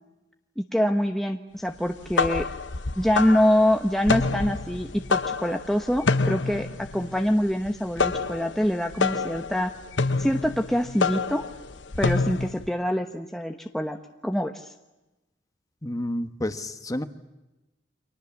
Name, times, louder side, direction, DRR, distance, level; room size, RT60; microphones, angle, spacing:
voice 1, 0.6-2.5 3.0-9.7 10.2-11.5 12.0-14.0 14.2-14.7, equal, ahead, 3 dB, 1.0 m, -25 dB
sound 1, 1.9-12.7, left 4 dB, 75° left, 1.0 m, -27 dB
voice 2, 15.8-17.0, left 1 dB, 20° left, 9 dB, 1.3 m, -30 dB
29.5 x 24.5 x 7.1 m, 1.0 s
head